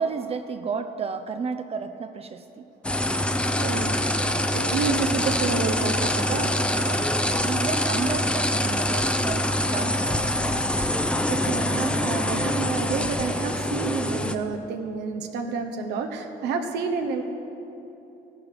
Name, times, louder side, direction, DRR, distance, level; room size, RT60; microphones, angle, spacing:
voice 1, 0.0-2.7 6.7-10.9, right 5 dB, 35° right, 8 dB, 0.6 m, -33 dB
sound 1, 2.8-14.4, left 1 dB, 5° left, 0.6 m, -25 dB
voice 2, 3.6-3.9 4.4-6.5 11.3-17.2, right 5 dB, 85° right, 4 dB, 1.2 m, -29 dB
15.0 x 11.5 x 5.0 m, 2.9 s
cardioid pair, 110°, 17 cm